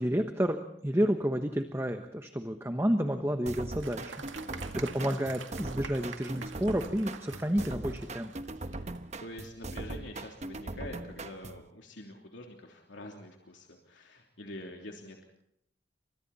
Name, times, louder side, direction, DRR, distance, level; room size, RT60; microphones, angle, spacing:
voice 1, 0.0-4.2 4.7-8.3, equal, 15° right, 6 dB, 1.2 m, -30 dB
sound 1, 3.5-11.7, right 2 dB, 35° right, 1.0 m, -40 dB
Applause, 3.5-9.0, right 5 dB, 80° right, 2.2 m, -47 dB
voice 2, 4.3-4.7 8.6-15.2, left 1 dB, 75° left, 1 dB, 3.2 m, -46 dB
29.0 x 25.5 x 4.3 m, 0.74 s
head